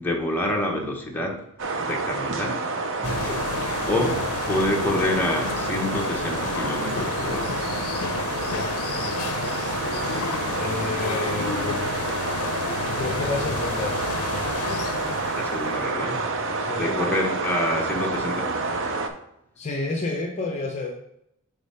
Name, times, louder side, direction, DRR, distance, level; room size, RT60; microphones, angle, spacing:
voice 1, 0.0-1.4 1.8-2.7 3.0-7.6 15.4-16.3 16.8-18.5, left 1 dB, 10° left, -1 dB, 0.9 m, -27 dB
sound 1, 1.6-19.1, right 3 dB, 60° right, 0.6 m, -29 dB
sound 2, 3.0-16.0, left 6 dB, 75° left, 0.5 m, -31 dB
voice 2, 10.6-11.8 12.8-14.0 16.6-17.0 19.6-20.9, left 2 dB, 30° left, 1 dB, 0.6 m, -30 dB
5.0 x 4.1 x 5.5 m, 0.80 s
head